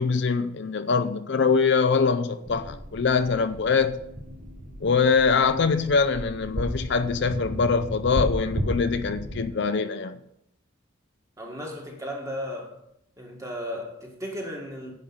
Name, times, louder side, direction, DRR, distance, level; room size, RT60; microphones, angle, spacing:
voice 1, 0.0-4.0 4.8-10.2, left 5 dB, 55° left, 0.5 m, -23 dB
sound 1, 2.4-9.4, equal, 35° right, 1.2 m, -34 dB
voice 2, 11.4-12.8 13.2-14.9, equal, 15° right, 1.8 m, -35 dB
10.0 x 5.5 x 7.2 m
head